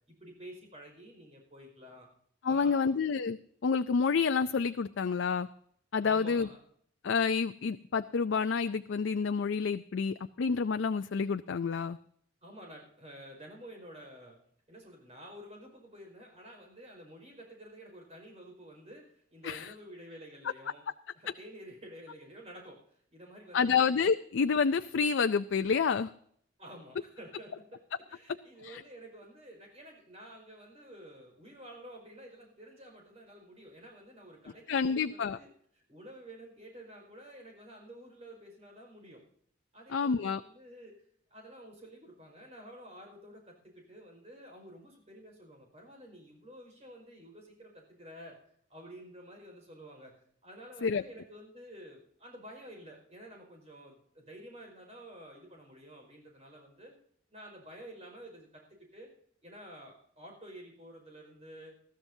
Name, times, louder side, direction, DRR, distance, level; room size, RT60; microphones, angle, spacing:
voice 1, 0.1-2.1 2.4-2.9 6.0-6.6 12.4-14.4 14.7-20.8 21.1-23.8 26.6-35.5 35.7-39.2 39.7-40.9 41.3-48.4 48.7-50.1 50.4-56.9 57.3-58.6 58.9-59.1 59.4-61.8, equal, 35° right, 1 dB, 5.0 m, -50 dB
voice 2, 2.4-5.5 5.9-6.5 7.0-12.0 19.4-19.7 23.5-26.1 28.6-28.8 34.7-35.4 39.9-40.4 50.8-51.0, left 5 dB, 80° left, 9 dB, 0.4 m, -29 dB
20.5 x 14.0 x 2.7 m, 0.63 s
head